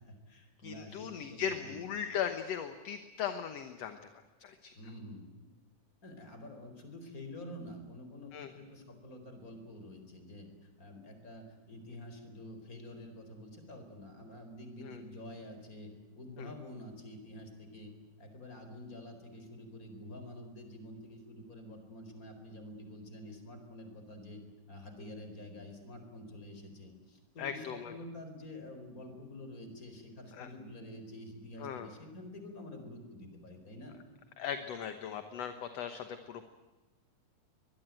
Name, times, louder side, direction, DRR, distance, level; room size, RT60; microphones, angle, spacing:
voice 1, 0.0-1.9 4.7-5.3 6.0-17.9 18.2-24.4 24.7-34.0, left 1 dB, 25° left, 6 dB, 4.7 m, -48 dB
voice 2, 0.6-4.0 4.4-4.7 8.3-8.5 14.8-15.0 16.4-16.5 27.4-27.9 30.4-30.5 31.6-31.9 34.4-36.4, left 8 dB, 60° left, 8 dB, 2.2 m, -38 dB
24.0 x 21.5 x 9.2 m, 1.1 s
omnidirectional pair, 3.6 m